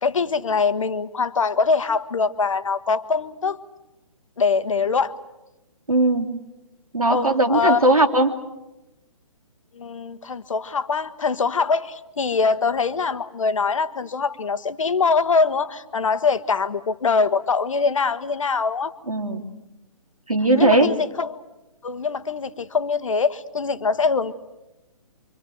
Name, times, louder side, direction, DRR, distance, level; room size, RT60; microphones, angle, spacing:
voice 1, 0.0-3.6 4.4-5.1 7.1-7.9 9.7-18.9 20.5-21.4 21.8-24.3, left 4 dB, 65° left, 13 dB, 1.4 m, -23 dB
voice 2, 5.9-6.4 6.9-8.4 19.1-19.4 20.3-20.9, right 2 dB, 85° right, 3 dB, 3.2 m, -19 dB
26.5 x 25.0 x 7.9 m, 0.98 s
figure-of-eight pair, 135°, 18 cm